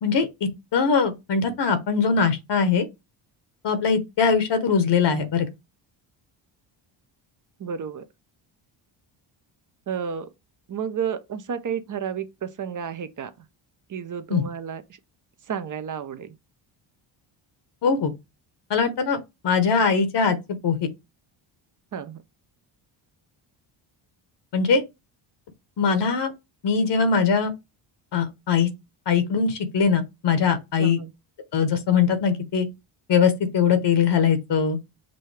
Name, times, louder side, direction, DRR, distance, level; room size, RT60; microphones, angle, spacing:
voice 1, 0.0-2.8 3.6-5.5 14.3-14.4 17.8-18.1 18.7-19.2 19.4-20.4 20.6-20.9 24.5-24.8 25.8-26.3 26.6-27.5 28.1-28.7 29.1-31.0 31.5-32.7 33.1-34.8, left 6 dB, 55° left, 1.0 m, -21 dB
voice 2, 7.6-8.0 9.9-10.3 10.7-13.3 13.9-14.8 15.5-16.3 21.9-22.2 30.8-31.1, right 7 dB, 40° right, 0.8 m, -31 dB
5.3 x 2.7 x 3.3 m
cardioid pair, 90°, 49 cm